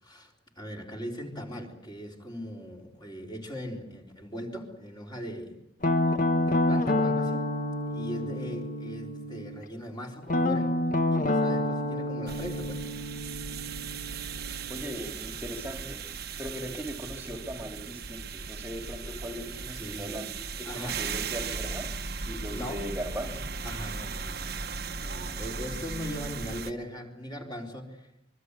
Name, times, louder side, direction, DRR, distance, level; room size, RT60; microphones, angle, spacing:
voice 1, 0.0-5.6 6.3-7.5 7.9-10.7 11.1-12.9 19.7-20.2 20.6-21.0 22.5-22.9 23.6-24.4 25.0-28.2, equal, 25° left, 0 dB, 3.9 m, -39 dB
Guitar, 5.8-9.6 10.3-15.0, left 1 dB, 45° left, 1.4 m, -28 dB
sound 1, 12.3-26.7, right 5 dB, 50° right, 1.3 m, -37 dB
voice 2, 14.7-16.0 16.4-20.3 20.6-21.9 22.3-23.5, equal, 10° right, 3 dB, 2.3 m, -38 dB
25.0 x 22.5 x 8.3 m, 0.87 s
head